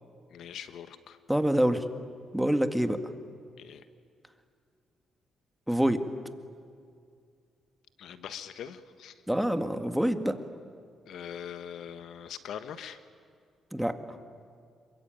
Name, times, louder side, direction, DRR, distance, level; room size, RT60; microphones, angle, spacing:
voice 1, 0.3-1.2 3.6-3.9 8.0-9.2 11.0-13.0, left 9 dB, 75° left, 11 dB, 1.3 m, -42 dB
voice 2, 1.3-1.8 2.3-3.0 5.7-6.0 9.3-10.4 13.7-14.0, equal, 5° right, 7 dB, 1.9 m, -26 dB
27.5 x 23.0 x 9.0 m, 2.2 s
cardioid pair, 90°, 0 cm